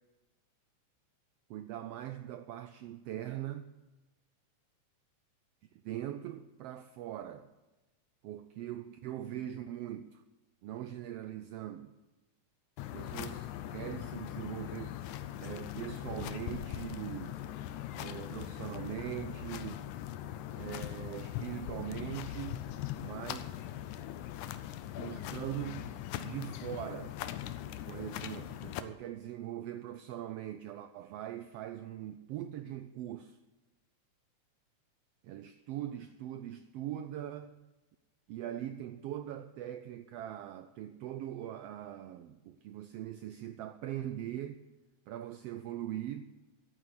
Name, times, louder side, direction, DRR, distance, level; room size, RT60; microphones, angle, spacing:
voice 1, 1.5-3.7 5.8-7.5 8.2-10.2 10.6-12.0 12.8-15.0 15.4-17.4 18.0-19.8 20.5-22.7 23.0-23.5 25.0-25.9 26.2-27.2 27.9-33.4 35.2-37.6 38.3-44.6 45.1-46.3, right 12 dB, 85° right, 1.3 m, -41 dB
sound 1, 12.8-28.8, left 12 dB, 85° left, 2.1 m, -41 dB
11.0 x 9.1 x 7.8 m
omnidirectional pair, 3.4 m